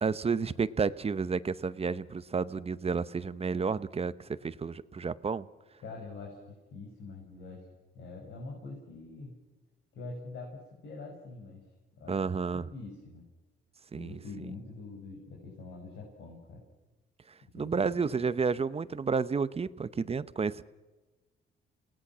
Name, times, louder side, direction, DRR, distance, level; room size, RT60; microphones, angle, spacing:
voice 1, 0.0-5.5 12.1-12.6 13.9-14.2 17.5-20.6, right 5 dB, 30° right, 0.9 m, -31 dB
voice 2, 5.8-7.7 7.9-9.3 9.9-11.6 12.0-12.2 12.7-13.3 13.9-16.6 17.4-17.9, left 3 dB, 75° left, 6.3 m, -44 dB
29.0 x 19.0 x 6.3 m
cardioid pair, 90°, 20 cm